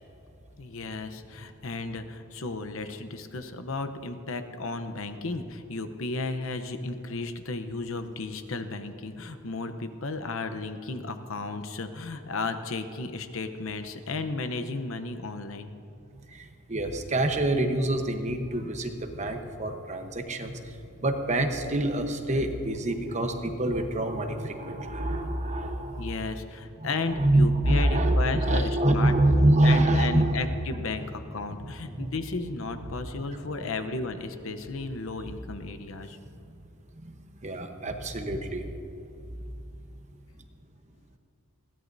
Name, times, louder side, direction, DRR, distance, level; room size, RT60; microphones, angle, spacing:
voice 1, 0.6-15.7 26.0-36.2, left 3 dB, 65° left, 9 dB, 0.8 m, -34 dB
voice 2, 16.3-26.1 26.8-30.4 31.5-32.1 36.5-36.6 37.0-37.2 37.4-38.7, right 1 dB, 35° right, 5 dB, 1.0 m, -26 dB
21.0 x 16.0 x 2.7 m, 2.7 s
head